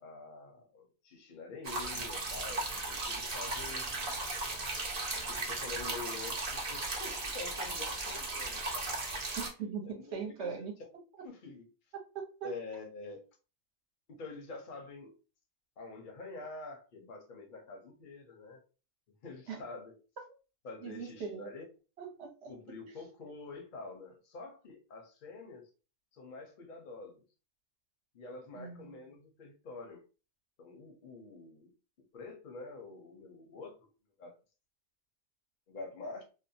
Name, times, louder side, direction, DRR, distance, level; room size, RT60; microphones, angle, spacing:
voice 1, 0.0-3.9 5.3-9.2 9.8-10.5 11.2-11.6 12.4-13.2 14.1-15.1 15.8-18.6 19.2-20.0 20.6-21.6 22.5-25.7 26.1-27.2 28.1-30.0 30.6-31.7 32.1-33.8 34.2-34.4 35.7-36.2, left 3 dB, 45° left, 2 dB, 0.7 m, -47 dB
sound 1, 1.6-9.5, right 2 dB, 45° right, 0.6 m, -36 dB
voice 2, 9.4-10.7 12.1-12.6 19.5-19.6 20.8-21.5 22.0-22.5 28.5-28.9, right 6 dB, 60° right, 2 dB, 0.9 m, -40 dB
2.6 x 2.1 x 2.6 m, 0.33 s
omnidirectional pair, 1.4 m